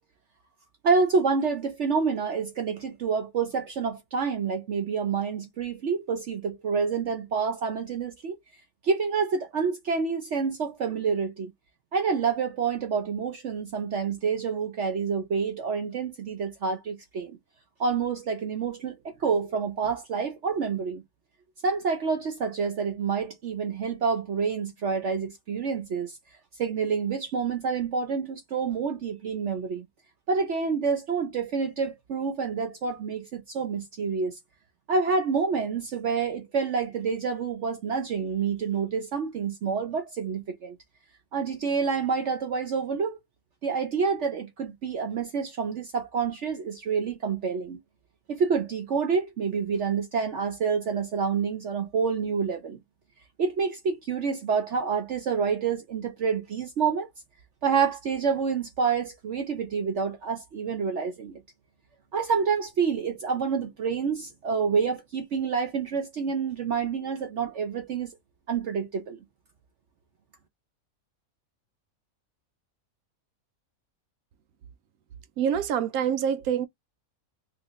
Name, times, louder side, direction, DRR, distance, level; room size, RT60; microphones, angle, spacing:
voice 1, 0.8-8.4 8.8-11.5 11.9-17.4 17.8-21.0 21.6-26.2 26.6-29.8 30.3-34.4 34.9-40.8 41.3-43.2 43.6-47.8 48.3-52.8 53.4-57.1 57.6-61.4 62.1-68.1 68.5-69.2, right 5 dB, 60° right, 1.0 m, -28 dB
voice 2, 75.4-76.7, right 8 dB, 85° right, 1.1 m, -26 dB
3.2 x 2.8 x 3.0 m
omnidirectional pair, 1.5 m